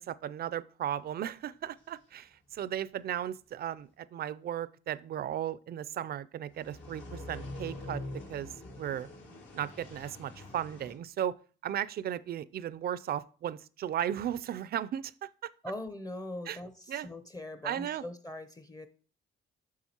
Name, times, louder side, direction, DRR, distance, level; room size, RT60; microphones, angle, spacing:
voice 1, 0.0-8.0 8.3-9.1 9.5-11.4 11.6-15.5 16.5-16.6 16.9-17.1 17.6-18.0, right 10 dB, 50° right, 0.4 m, -36 dB
sound 1, 6.5-10.9, left 2 dB, 75° left, 2.0 m, -44 dB
voice 2, 15.6-18.9, left 1 dB, 20° left, 0.6 m, -41 dB
7.2 x 5.9 x 2.8 m
cardioid pair, 90°, 20 cm